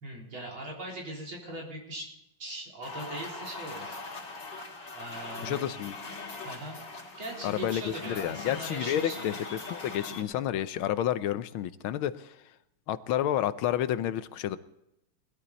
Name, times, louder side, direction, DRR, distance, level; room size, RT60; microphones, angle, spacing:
voice 1, 0.0-2.1 2.4-4.0 4.9-5.7 6.4-6.8 7.2-9.4, right 1 dB, 80° right, -2 dB, 4.7 m, -40 dB
sound 1, 2.8-10.2, left 3 dB, 60° left, 3.2 m, -41 dB
voice 2, 5.4-5.9 7.4-9.3 9.7-12.4 12.9-14.6, left 11 dB, 85° left, 13 dB, 1.6 m, -30 dB
20.5 x 12.0 x 4.2 m, 0.85 s
omnidirectional pair, 2.2 m